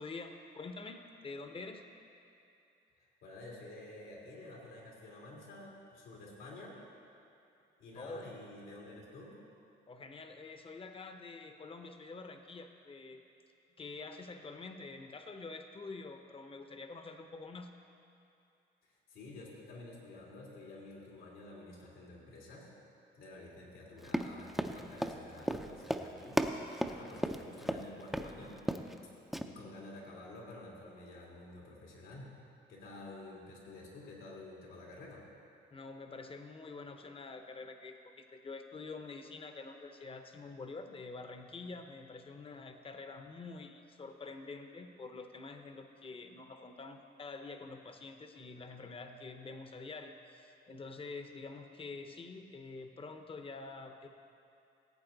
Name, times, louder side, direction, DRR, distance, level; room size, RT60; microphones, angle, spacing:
voice 1, 0.0-1.8 8.0-8.2 9.9-13.2 13.8-17.7 35.7-54.1, left 3 dB, 25° left, 6 dB, 0.8 m, -47 dB
voice 2, 3.0-6.8 7.8-9.3 19.1-22.7 23.1-28.6 29.4-32.3 32.7-35.2, left 2 dB, 90° left, -3 dB, 2.8 m, -50 dB
Run, 24.0-27.8 28.1-28.3 28.6-29.0 29.3-29.4, equal, ahead, 0.5 m, -34 dB
16.0 x 8.4 x 3.9 m, 2.6 s
cardioid pair, 90°, 20 cm